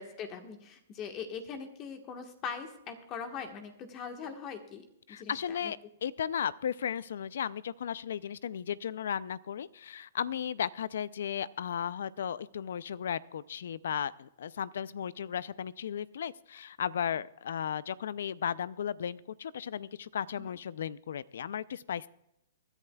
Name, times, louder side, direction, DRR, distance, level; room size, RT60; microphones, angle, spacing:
voice 1, 0.0-5.7 20.4-20.5, left 6 dB, 30° left, 6 dB, 1.4 m, -41 dB
voice 2, 5.1-22.1, left 8 dB, 75° left, 20 dB, 0.4 m, -35 dB
24.5 x 10.5 x 2.3 m, 0.82 s
hypercardioid pair, 140°, 0 cm